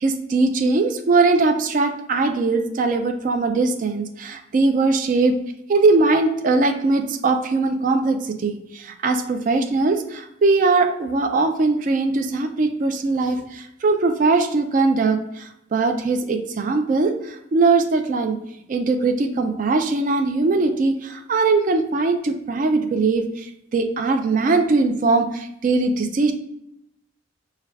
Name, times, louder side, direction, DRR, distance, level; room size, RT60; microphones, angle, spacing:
voice 1, 0.0-5.4 5.7-18.4 18.7-26.3, right 3 dB, 40° right, 6 dB, 0.3 m, -20 dB
4.6 x 2.3 x 3.3 m, 0.80 s
head